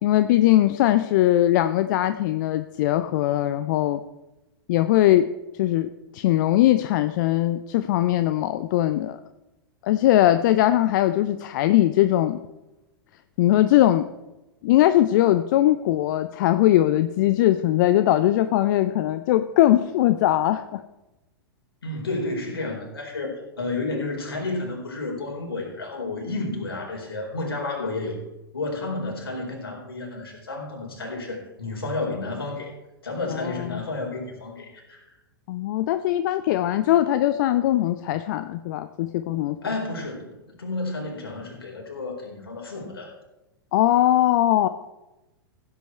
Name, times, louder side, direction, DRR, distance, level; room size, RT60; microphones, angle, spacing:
voice 1, 0.0-4.0 4.7-5.3 5.6-9.2 9.8-12.4 13.4-14.1 14.6-20.8 33.4-33.8 35.5-39.6 43.7-44.7, left 13 dB, 50° left, 10 dB, 0.6 m, -20 dB
voice 2, 21.8-28.2 28.5-32.7 33.0-35.1 39.6-43.1, left 2 dB, 75° left, 0 dB, 4.6 m, -31 dB
15.5 x 8.4 x 4.5 m, 0.99 s
figure-of-eight pair, 105°, 13 cm